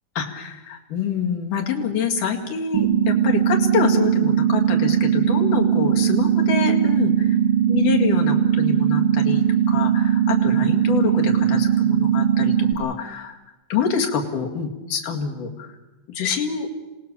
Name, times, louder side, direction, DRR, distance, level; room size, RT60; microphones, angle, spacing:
voice 1, 0.2-7.4 7.7-13.4 13.7-15.7 16.1-16.7, left 6 dB, 70° left, 1 dB, 3.7 m, -26 dB
sound 1, 2.7-12.7, right 9 dB, 75° right, 3.2 m, -19 dB
26.5 x 18.5 x 7.0 m, 1.1 s
omnidirectional pair, 3.8 m